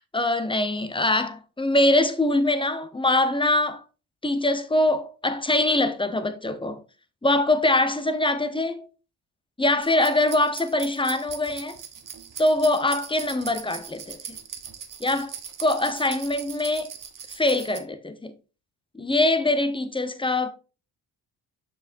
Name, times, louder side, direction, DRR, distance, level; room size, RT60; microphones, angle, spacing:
voice 1, 0.1-3.8 4.2-6.8 7.2-8.9 9.6-11.8 12.4-14.4 15.0-15.3 15.6-16.9 17.3-18.3 18.9-20.5, left 1 dB, 10° left, 0.9 m, -23 dB
sound 1, 9.8-17.8, right 7 dB, 40° right, 1.2 m, -40 dB
7.1 x 5.6 x 2.6 m
supercardioid pair, 75°, 48 cm